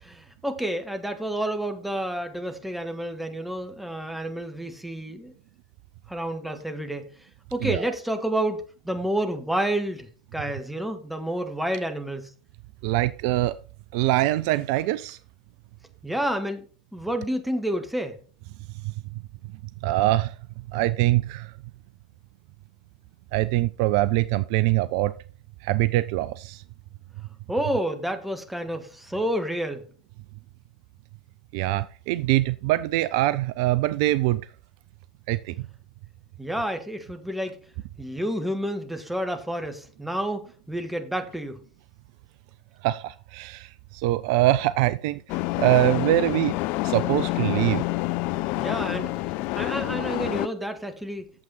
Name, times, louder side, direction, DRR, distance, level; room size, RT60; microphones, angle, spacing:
voice 1, 0.0-5.3 6.1-7.1 7.5-12.3 16.0-16.6 16.9-18.2 27.5-29.8 36.4-37.5 38.0-41.6 48.6-51.2, right 1 dB, 5° right, 1.6 m, -29 dB
voice 2, 12.8-13.6 13.9-15.2 18.8-18.9 19.8-20.4 20.7-21.5 23.3-25.2 25.6-26.6 31.5-34.5 35.3-35.7 42.8-46.6 46.8-47.8, right 16 dB, 50° right, 0.4 m, -23 dB
sound 1, 45.3-50.5, left 19 dB, 45° left, 0.4 m, -27 dB
8.7 x 7.4 x 4.2 m
figure-of-eight pair, 80°, 3 cm